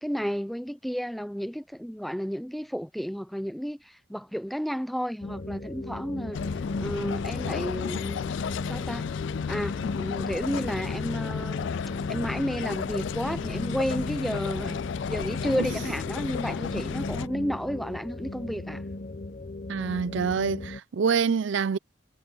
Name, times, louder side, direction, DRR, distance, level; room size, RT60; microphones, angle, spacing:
voice 1, 0.0-6.4 6.8-8.3 8.7-9.1 9.5-11.7 12.1-14.8 15.1-18.8, equal, ahead, 0.5 m, -32 dB
sound 1, 5.2-20.8, left 2 dB, 40° left, 0.8 m, -37 dB
sound 2, 6.3-17.3, left 6 dB, 60° left, 0.3 m, -33 dB
voice 2, 19.7-21.8, right 6 dB, 60° right, 0.4 m, -26 dB
head